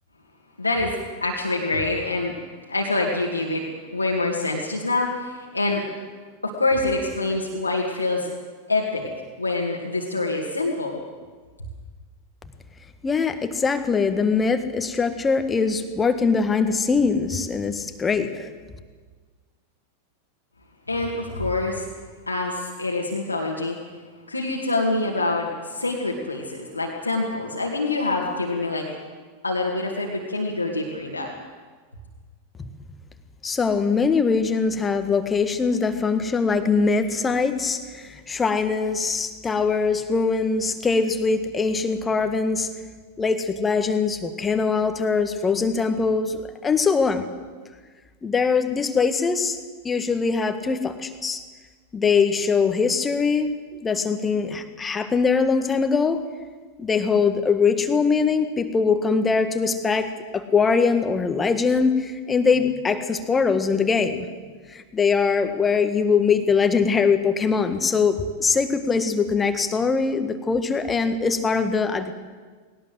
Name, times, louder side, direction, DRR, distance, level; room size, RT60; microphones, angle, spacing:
voice 1, 0.6-2.3 2.7-5.9 6.4-8.3 8.7-9.1 9.4-11.0 20.9-21.9 22.3-23.8 24.3-28.9 29.4-31.3, left 2 dB, 80° left, -1 dB, 2.3 m, -25 dB
voice 2, 13.0-18.5 32.6-32.7 33.4-42.7 43.2-47.3 48.2-49.6 49.8-51.4 51.9-56.2 56.8-64.3 64.7-72.1, left 5 dB, 15° left, 9 dB, 1.7 m, -22 dB
19.5 x 18.0 x 7.9 m, 1.5 s
figure-of-eight pair, 90°, 0 cm